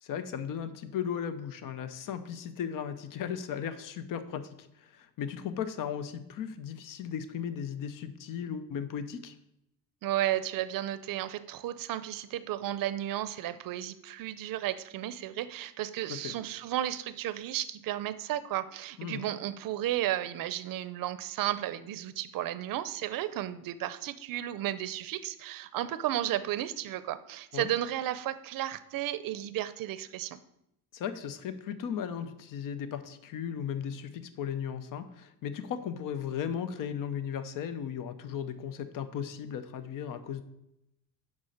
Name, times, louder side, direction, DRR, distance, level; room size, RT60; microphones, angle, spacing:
voice 1, 0.0-4.5 4.8-9.4 16.1-16.3 19.0-19.3 27.5-27.7 30.9-40.4, left 8 dB, 55° left, 11 dB, 0.9 m, -36 dB
voice 2, 10.0-30.4, right 13 dB, 55° right, 14 dB, 0.7 m, -33 dB
7.3 x 5.5 x 6.5 m, 0.83 s
cardioid pair, 120°, 39 cm